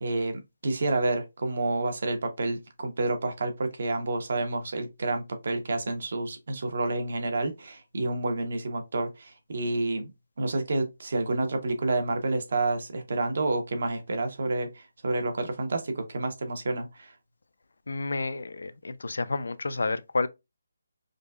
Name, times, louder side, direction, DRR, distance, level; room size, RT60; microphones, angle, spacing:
voice 1, 0.0-10.1 10.4-17.1, right 2 dB, 50° right, 0.8 m, -29 dB
voice 2, 17.9-20.3, left 3 dB, 75° left, 0.4 m, -30 dB
4.9 x 2.2 x 2.3 m
hypercardioid pair, 175°, 0 cm